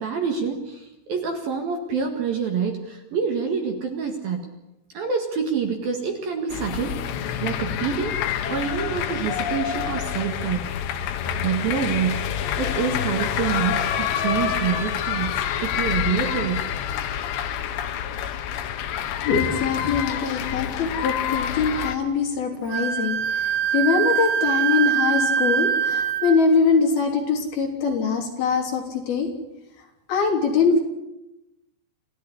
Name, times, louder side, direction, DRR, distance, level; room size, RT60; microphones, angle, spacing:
voice 1, 0.0-4.5 4.9-7.0 7.4-8.2 8.5-10.7 11.4-12.2 12.6-16.7 21.7-21.8, right 6 dB, 55° right, 5 dB, 3.1 m, -27 dB
sound 1, 6.5-22.0, left 9 dB, 65° left, 3.2 m, -27 dB
voice 2, 19.2-29.3 30.1-30.8, left 5 dB, 50° left, 2 dB, 4.9 m, -23 dB
Wind instrument woodwind instrument, 22.7-26.4, right 8 dB, 90° right, 4.2 m, -23 dB
28.0 x 16.0 x 9.9 m, 0.94 s
omnidirectional pair, 5.9 m